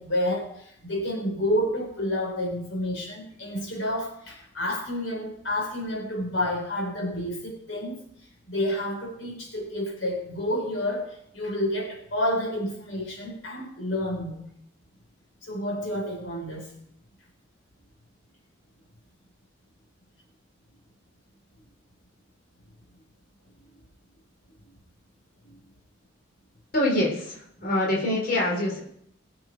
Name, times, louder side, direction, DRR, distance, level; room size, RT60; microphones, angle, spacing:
voice 1, 0.0-8.0 8.5-14.4 15.4-16.7 25.4-25.6, left 1 dB, 80° left, 1 dB, 3.9 m, -29 dB
voice 2, 26.7-28.8, left 1 dB, 50° left, -3 dB, 3.7 m, -25 dB
21.5 x 7.9 x 4.6 m, 0.73 s
head